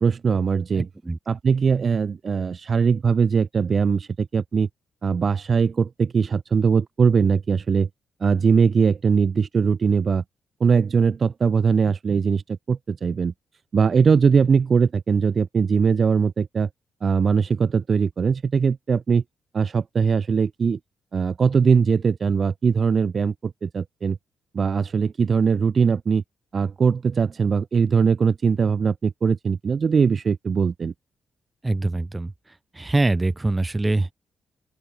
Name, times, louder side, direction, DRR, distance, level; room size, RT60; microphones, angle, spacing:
voice 1, 0.0-0.9 1.3-4.7 5.0-7.9 8.2-10.2 10.6-13.3 13.7-16.7 17.0-19.2 19.5-20.8 21.1-24.2 24.5-26.2 26.5-30.9, right 5 dB, 35° right, 0.7 m, -21 dB
voice 2, 0.8-1.2 31.6-32.3 32.7-34.1, right 2 dB, 15° right, 1.2 m, -23 dB
open air
wide cardioid pair, 170°, 0 cm